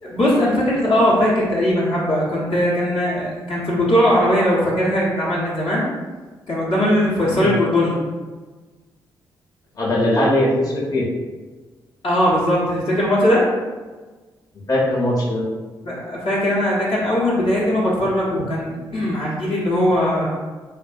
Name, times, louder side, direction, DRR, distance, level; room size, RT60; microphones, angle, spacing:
voice 1, 0.0-5.8 6.5-8.0 12.0-13.5 15.8-20.3, left 1 dB, 65° left, -7 dB, 0.9 m, -19 dB
voice 2, 9.8-11.0 14.7-15.4, left 1 dB, 35° left, -6 dB, 0.8 m, -19 dB
2.5 x 2.3 x 2.5 m, 1.3 s
hypercardioid pair, 40°, 10 cm